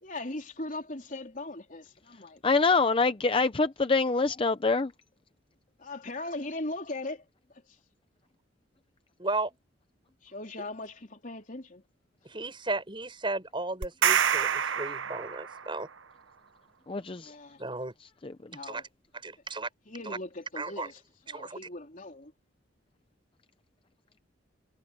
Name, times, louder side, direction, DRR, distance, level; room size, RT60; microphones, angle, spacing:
voice 1, 0.0-2.4 5.8-7.2 10.2-11.8 17.0-17.6 18.4-18.8 19.9-21.0 21.3-22.3, left 2 dB, 45° left, 3.9 m, -39 dB
voice 2, 2.4-4.9 16.9-17.3 18.2-18.3, left 4 dB, 30° left, 0.6 m, -25 dB
voice 3, 9.2-9.5 12.2-15.9 17.6-17.9 18.6-18.8 19.2-19.7 20.0-20.2 20.5-20.9 21.3-21.6, right 2 dB, 25° right, 6.6 m, -34 dB
sound 1, 13.8-15.8, right 8 dB, 80° right, 0.9 m, -27 dB
head